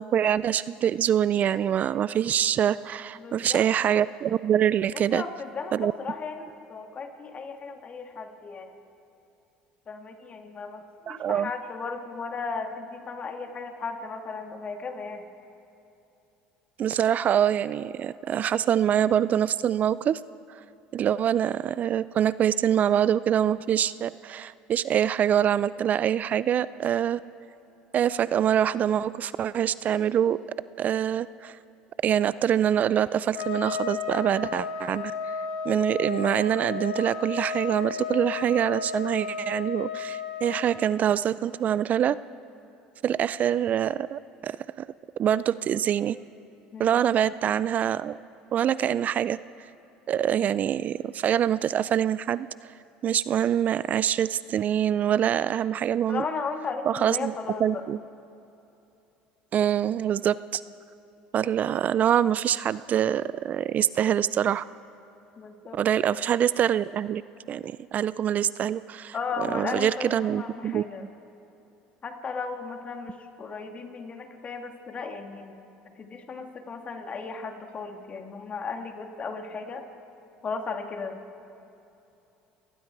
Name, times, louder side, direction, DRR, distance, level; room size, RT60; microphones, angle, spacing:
voice 1, 0.0-5.2 5.7-5.9 11.1-11.5 16.8-20.2 20.9-27.2 27.9-30.4 30.8-31.6 32.0-35.1 35.6-42.2 43.0-44.9 45.2-46.2 46.8-48.2 48.5-49.4 50.1-52.5 53.0-56.2 56.9-57.3 57.6-58.0 59.5-60.6 61.3-64.6 65.7-67.2 67.5-69.1 69.5-70.8, right 9 dB, 45° right, 18 dB, 0.4 m, -25 dB
voice 2, 3.2-3.7 4.9-8.7 9.9-15.2 46.7-47.0 56.1-57.8 65.4-65.8 69.1-71.0 72.0-75.5 76.0-79.9 80.4-81.2, left 4 dB, 35° left, 5 dB, 2.3 m, -35 dB
Trumpet, 33.3-40.7, left 6 dB, 75° left, 1.7 m, -33 dB
29.5 x 18.5 x 4.7 m, 2.9 s
supercardioid pair, 85°, 4 cm